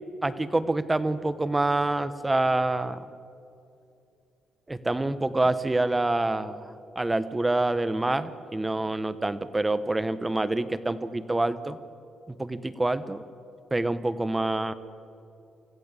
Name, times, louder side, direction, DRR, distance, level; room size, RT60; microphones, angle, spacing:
voice 1, 0.2-3.0 4.7-11.8 12.4-13.2 13.7-14.7, right 2 dB, 15° right, 14 dB, 1.0 m, -26 dB
26.0 x 14.5 x 8.3 m, 2.6 s
cardioid pair, 90°, 0 cm